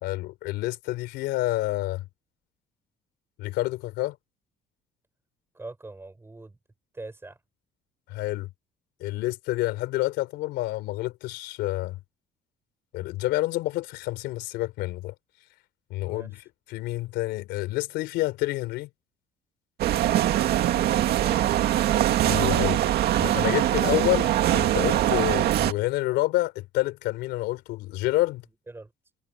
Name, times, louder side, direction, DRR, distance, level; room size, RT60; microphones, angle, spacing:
voice 1, 0.0-2.1 3.4-4.2 8.1-8.5 9.0-12.0 12.9-15.1 15.9-18.9 22.2-22.8 23.2-28.4, left 17 dB, 90° left, 3.6 m, -28 dB
voice 2, 5.5-6.6 6.9-7.4 16.0-16.4 28.7-28.9, right 2 dB, 15° right, 5.4 m, -42 dB
sound 1, 19.8-25.7, right 12 dB, 70° right, 2.1 m, -22 dB
cardioid pair, 110°, 17 cm